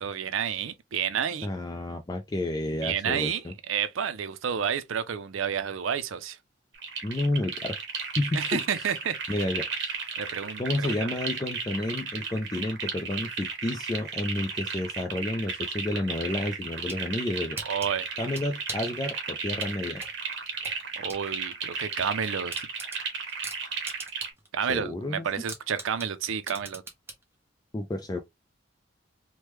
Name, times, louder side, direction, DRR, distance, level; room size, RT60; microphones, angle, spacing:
voice 1, 0.0-1.5 2.8-6.4 8.3-9.2 10.2-11.1 17.6-18.1 21.0-22.5 24.5-26.8, right 7 dB, 80° right, 0.5 m, -30 dB
voice 2, 1.4-3.5 7.0-7.8 8.2-8.9 9.3-10.0 10.6-17.6 18.2-20.0 24.7-25.3 27.7-28.2, left 1 dB, 20° left, 0.3 m, -31 dB
sound 1, 6.7-24.3, right 5 dB, 60° right, 0.9 m, -34 dB
sound 2, 16.6-17.0 17.6-19.0 19.6-21.2 21.6-21.7 22.1-22.2 22.5-24.5 24.8-24.9 25.5-27.2, right 2 dB, 10° right, 0.7 m, -40 dB
3.2 x 2.1 x 2.9 m
head